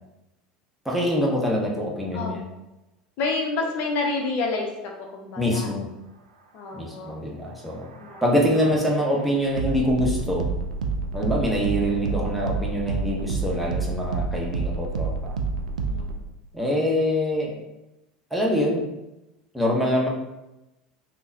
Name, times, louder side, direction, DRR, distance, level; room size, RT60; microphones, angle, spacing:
voice 1, 0.8-2.4 5.4-5.9 6.7-7.9 8.2-10.5 11.1-15.4 16.5-17.6 18.3-18.8 19.5-20.1, equal, ahead, -3 dB, 0.8 m, -24 dB
voice 2, 3.2-5.7 6.5-7.2 8.0-8.2 15.9-16.1, left 3 dB, 55° left, 1 dB, 0.5 m, -29 dB
sound 1, 7.5-16.2, right 4 dB, 85° right, 0.3 m, -29 dB
3.7 x 2.0 x 2.6 m, 0.94 s
hypercardioid pair, 80°, 4 cm